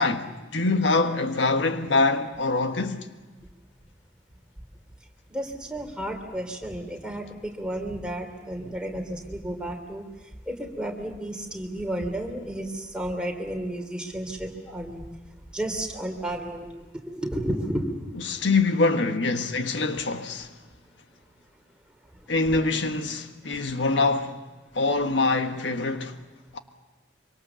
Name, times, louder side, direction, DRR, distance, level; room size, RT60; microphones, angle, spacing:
voice 1, 0.0-3.1 18.2-20.5 22.3-24.4 24.7-26.1 26.5-26.6, left 3 dB, 85° left, 1.5 m, -24 dB
voice 2, 5.3-10.0 10.5-15.1 15.5-17.9, right 1 dB, 5° right, 3.1 m, -32 dB
25.0 x 24.5 x 7.1 m
head